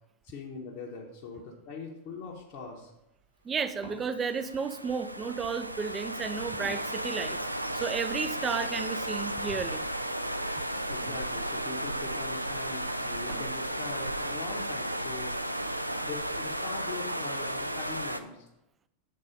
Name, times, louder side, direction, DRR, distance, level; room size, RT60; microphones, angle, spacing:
voice 1, 0.2-2.9 10.9-18.5, left 4 dB, 45° left, -1 dB, 0.9 m, -42 dB
Wood, 2.1-13.6, right 2 dB, 55° right, 2.2 m, -53 dB
voice 2, 3.4-7.4 7.7-9.9, right 5 dB, 20° right, 11 dB, 0.4 m, -33 dB
sound 1, 4.0-18.2, right 1 dB, 85° right, 0.3 m, -34 dB
7.5 x 4.0 x 5.0 m, 0.89 s
figure-of-eight pair, 90°, 0 cm